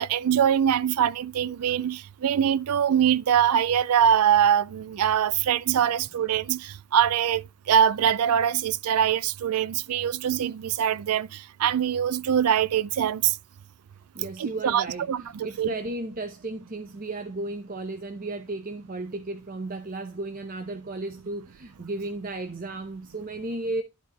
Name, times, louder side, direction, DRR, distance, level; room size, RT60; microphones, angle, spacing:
voice 1, 0.0-13.4 14.4-15.7, right 9 dB, 85° right, 0.4 m, -23 dB
voice 2, 14.1-23.8, right 2 dB, 40° right, 0.7 m, -34 dB
11.5 x 4.2 x 4.1 m
head